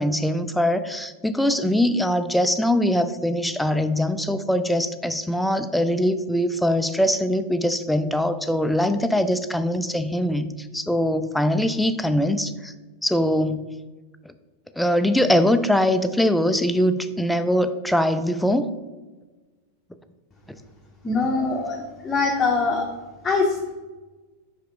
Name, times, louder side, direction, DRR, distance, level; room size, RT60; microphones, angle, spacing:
voice 1, 0.0-12.7 13.0-13.7 14.8-18.7, equal, ahead, 10 dB, 0.4 m, -22 dB
voice 2, 21.0-23.0 23.2-23.7, left 3 dB, 20° left, -1 dB, 0.7 m, -23 dB
5.6 x 5.1 x 3.5 m, 1.2 s
figure-of-eight pair, 90°, 0 cm